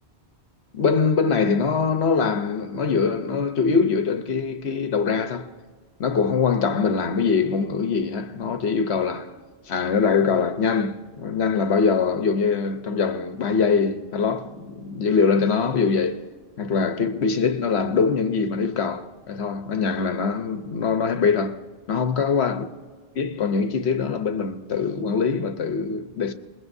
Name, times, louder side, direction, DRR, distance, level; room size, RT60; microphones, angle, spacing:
voice 1, 0.7-5.5 6.0-9.3 9.7-16.2 16.6-21.6 21.9-22.6 23.1-26.3, left 5 dB, 70° left, 1.2 m, -23 dB
25.0 x 21.0 x 2.7 m
omnidirectional pair, 1.1 m